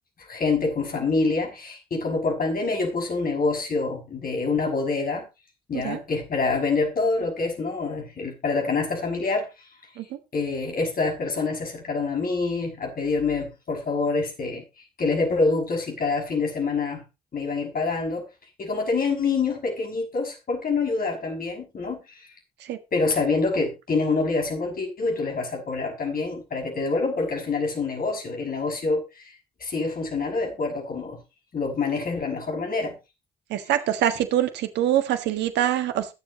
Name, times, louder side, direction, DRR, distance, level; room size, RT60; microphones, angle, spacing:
voice 1, 0.3-5.3 5.7-9.7 10.3-14.6 15.0-17.1 17.3-18.3 18.6-22.3 22.9-31.2 31.5-33.0, left 3 dB, 55° left, 6.1 m, -26 dB
voice 2, 33.5-36.1, right 11 dB, 75° right, 1.5 m, -24 dB
21.5 x 7.4 x 2.9 m
hypercardioid pair, 45°, 18 cm